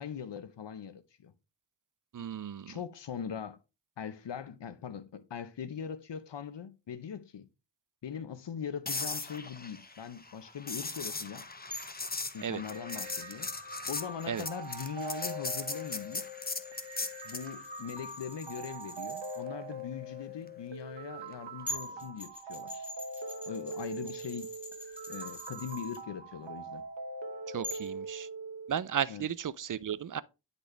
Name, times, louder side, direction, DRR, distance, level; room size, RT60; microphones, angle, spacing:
voice 1, 0.0-1.3 2.7-3.6 4.0-7.5 8.0-11.5 12.3-13.5 13.9-16.3 17.2-22.9 23.5-24.5 25.1-26.8 29.1-29.3, left 7 dB, 70° left, 0.9 m, -41 dB
voice 2, 2.1-2.8 12.4-12.6 14.3-14.5 27.5-28.3 28.7-30.2, right 8 dB, 50° right, 0.4 m, -34 dB
sound 1, 8.9-17.5 21.7-21.9, left 3 dB, 20° left, 0.8 m, -38 dB
sound 2, 11.7-19.4 21.3-21.4 21.7-26.0 27.6-27.9, left 2 dB, 5° right, 4.6 m, -46 dB
sound 3, 12.7-28.7, right 2 dB, 80° right, 1.1 m, -43 dB
9.7 x 4.1 x 3.3 m
wide cardioid pair, 65°, 43 cm